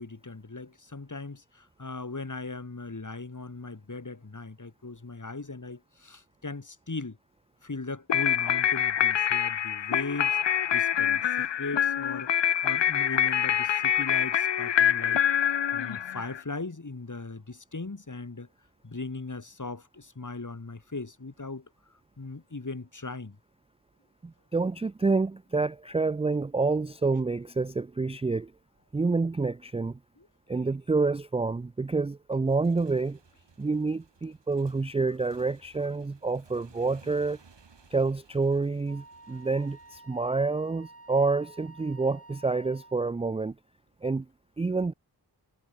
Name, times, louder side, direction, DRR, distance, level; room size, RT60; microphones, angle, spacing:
voice 1, 0.0-7.2 7.6-10.4 10.7-12.3 12.6-15.2 15.7-18.5 18.8-21.7 22.2-23.4 30.2-30.3, left 3 dB, 45° left, 5.6 m, -38 dB
sound 1, 8.1-16.4, left 9 dB, 85° left, 0.8 m, -25 dB
voice 2, 24.2-28.5 28.9-30.0 30.5-33.2 33.6-37.4 37.9-43.5 44.0-44.3 44.6-44.9, right 3 dB, 15° right, 0.3 m, -28 dB
Motorcycle / Engine, 32.5-40.0, right 5 dB, 80° right, 5.2 m, -58 dB
Wind instrument woodwind instrument, 38.9-43.1, right 2 dB, 35° right, 4.8 m, -51 dB
wide cardioid pair, 65°, 43 cm